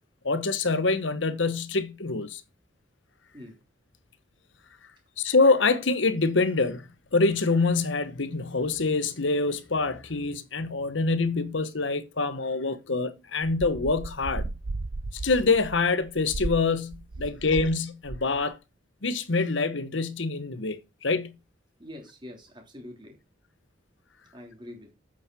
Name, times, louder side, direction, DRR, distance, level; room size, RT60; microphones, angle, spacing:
voice 1, 0.2-2.4 5.2-14.5 15.1-18.6 19.0-21.3, left 3 dB, 75° left, 1.2 m, -25 dB
sound 1, 13.4-17.8 18.0-18.4, right 2 dB, 75° right, 0.8 m, -35 dB
voice 2, 21.8-23.2 24.3-24.9, left 1 dB, 25° right, 3.1 m, -44 dB
8.7 x 6.3 x 6.0 m
head